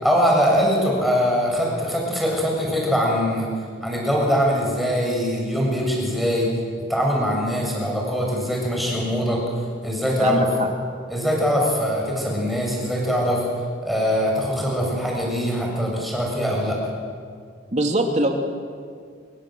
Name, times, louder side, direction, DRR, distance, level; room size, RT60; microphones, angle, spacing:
voice 1, 0.0-3.5 3.8-6.5 6.9-9.4 9.8-10.5 11.1-13.4 13.8-16.8, equal, ahead, -2 dB, 7.4 m, -22 dB
voice 2, 17.7-18.3, right 1 dB, 35° right, 3 dB, 2.7 m, -21 dB
27.0 x 23.0 x 8.0 m, 2.1 s
head